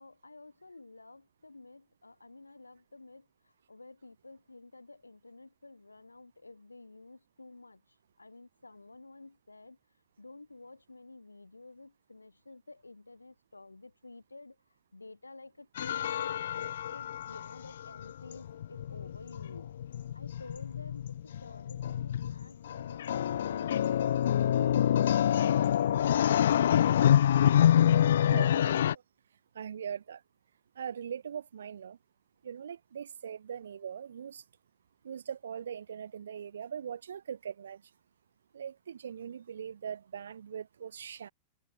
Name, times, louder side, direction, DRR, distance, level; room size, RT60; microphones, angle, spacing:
voice 1, 0.0-14.6 14.9-23.8, left 3 dB, 80° left, 6.2 m, -51 dB
sound 1, 15.8-28.9, left 10 dB, 65° left, 0.7 m, -27 dB
voice 2, 28.3-29.0 29.5-30.2 30.8-32.0 32.4-34.4 35.0-37.8 38.5-41.3, right 8 dB, 65° right, 2.2 m, -41 dB
figure-of-eight pair, 90°, 0 cm